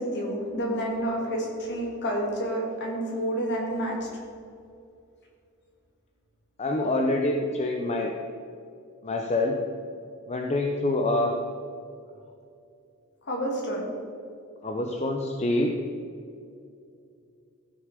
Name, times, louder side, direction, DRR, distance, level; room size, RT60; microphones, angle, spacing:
voice 1, 0.0-4.0 13.3-13.8, right 1 dB, 50° left, -1 dB, 2.7 m, -29 dB
voice 2, 6.6-8.1 9.0-9.6 10.3-11.3 14.6-15.8, left 2 dB, 30° left, 2 dB, 0.7 m, -26 dB
14.0 x 6.5 x 5.2 m, 2.5 s
head